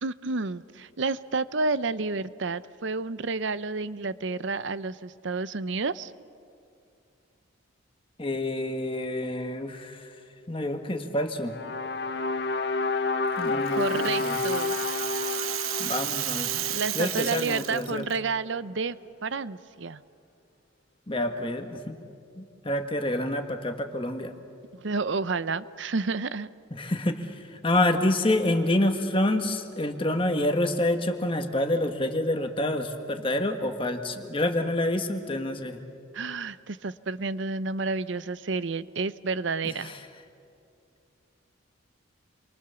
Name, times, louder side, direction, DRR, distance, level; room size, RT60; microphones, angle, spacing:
voice 1, 0.0-6.1 13.7-14.7 16.7-19.0 19.2-20.0 24.7-26.5 36.1-39.9, right 4 dB, 65° right, 15 dB, 0.7 m, -30 dB
voice 2, 8.2-10.1 10.5-11.6 13.4-14.4 15.8-16.6 16.9-18.1 21.1-22.0 22.4-24.3 26.7-35.8 39.6-40.0, left 1 dB, 25° left, 6 dB, 1.5 m, -28 dB
sound 1, 11.5-17.7, left 3 dB, 55° left, 0.9 m, -30 dB
Rattle (instrument), 13.4-18.1, right 13 dB, 90° right, 0.9 m, -33 dB
28.5 x 23.5 x 7.0 m, 2.5 s
head